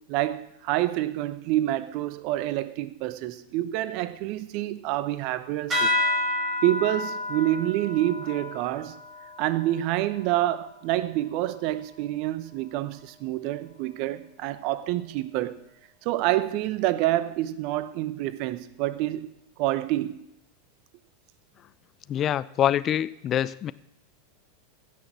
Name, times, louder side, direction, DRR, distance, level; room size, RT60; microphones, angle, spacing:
voice 1, 0.1-5.9 6.6-9.0 9.4-15.6 16.0-19.3 19.6-20.2, right 15 dB, 50° right, 0.8 m, -27 dB
sound 1, 5.7-10.6, left 1 dB, 25° right, 6.1 m, -30 dB
voice 2, 22.1-23.7, left 11 dB, 35° left, 0.5 m, -25 dB
15.5 x 6.5 x 6.1 m
hypercardioid pair, 90°, 0 cm